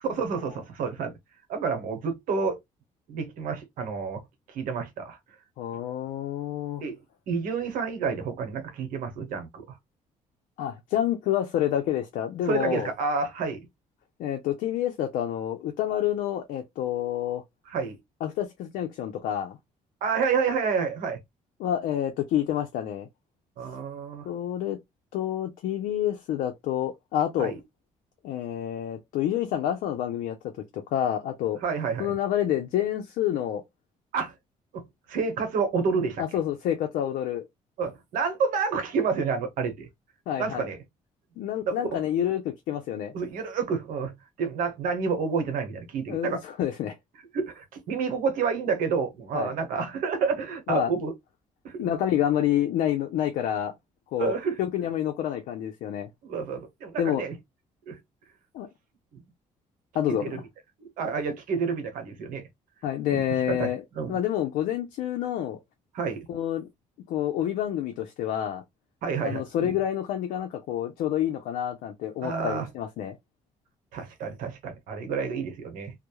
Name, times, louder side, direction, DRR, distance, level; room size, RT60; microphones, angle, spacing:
voice 1, 0.1-1.1 1.5-2.6 3.1-4.2 4.5-5.2 6.8-7.0 7.3-9.8 12.5-13.6 17.7-18.0 20.0-21.2 23.6-24.3 27.4-27.6 31.6-32.1 34.1-34.3 34.7-36.2 37.8-39.9 40.4-40.8 41.7-42.0 43.1-46.4 47.3-51.1 51.6-51.8 54.2-54.6 56.2-57.4 57.9-58.0 59.1-59.2 60.1-60.4 60.8-62.5 63.1-64.2 65.9-66.3 69.0-69.7 72.2-72.7 73.9-75.9, right 5 dB, 80° right, 0.8 m, -29 dB
voice 2, 5.6-6.8 10.6-12.9 14.2-17.4 18.2-19.6 21.6-23.1 24.3-24.8 25.1-27.5 28.2-30.4 30.7-31.6 32.0-33.6 36.2-37.5 40.3-40.7 41.4-43.1 46.1-47.0 49.3-49.5 50.7-50.9 51.8-53.7 54.1-54.3 54.6-56.1 57.0-57.2 58.5-58.7 59.9-60.4 62.8-65.6 66.3-66.7 67.1-68.6 69.2-73.2, left 11 dB, 85° left, 0.5 m, -28 dB
2.2 x 2.0 x 2.9 m
cardioid pair, 100°, 14 cm